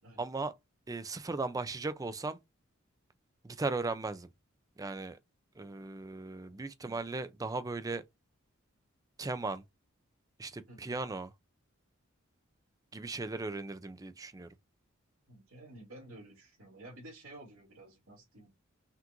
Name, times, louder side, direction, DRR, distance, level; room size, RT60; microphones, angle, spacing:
voice 1, 0.2-0.5 0.9-2.4 3.4-4.3 4.8-5.2 5.6-8.0 9.2-9.6 10.4-11.3 12.9-14.5, right 3 dB, 15° right, 0.4 m, -37 dB
voice 2, 10.7-11.0 15.3-18.5, right 1 dB, 80° right, 2.6 m, -52 dB
5.8 x 2.5 x 2.9 m
head